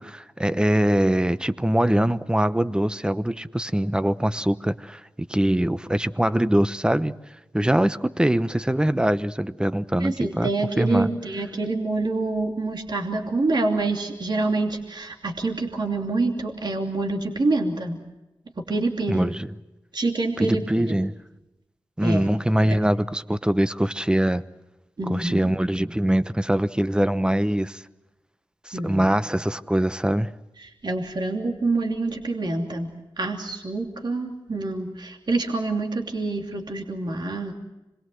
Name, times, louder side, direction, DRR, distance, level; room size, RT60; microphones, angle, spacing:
voice 1, 0.0-7.1 7.5-10.5 10.8-11.1 19.1-19.5 20.4-21.2 22.0-24.4 25.1-27.8 28.6-30.3, right 1 dB, 10° right, 0.9 m, -23 dB
voice 2, 10.0-18.0 18.6-19.3 19.9-21.0 22.0-22.3 25.0-25.5 28.7-29.1 30.6-37.5, right 2 dB, 55° right, 2.9 m, -26 dB
26.5 x 21.5 x 7.8 m
cardioid pair, 50°, 9 cm